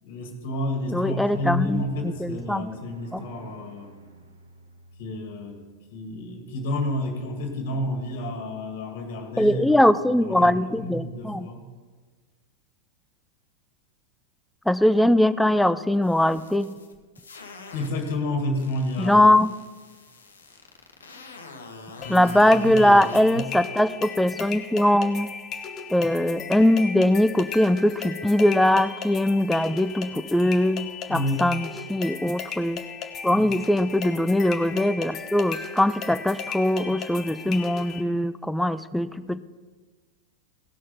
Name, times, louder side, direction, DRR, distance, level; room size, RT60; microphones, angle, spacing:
voice 1, 0.0-4.0 5.0-5.6 5.9-9.8 10.1-11.6 17.7-19.3 22.0-23.5 31.1-31.5 33.3-33.5, left 1 dB, 50° left, 3 dB, 2.0 m, -30 dB
voice 2, 0.9-2.6 3.1-3.2 9.4-11.5 14.7-16.7 19.0-19.5 22.1-25.3 25.9-32.8 33.2-39.4, left 1 dB, 5° left, 14 dB, 0.4 m, -21 dB
sound 1, 1.3-7.7, right 2 dB, 80° right, 1.1 m, -49 dB
sound 2, 15.9-18.2 18.6-23.2, left 3 dB, 70° left, 1.2 m, -45 dB
sound 3, 22.0-38.0, left 6 dB, 30° left, 1.0 m, -36 dB
17.0 x 6.4 x 5.6 m, 1.4 s
figure-of-eight pair, 90°, 0 cm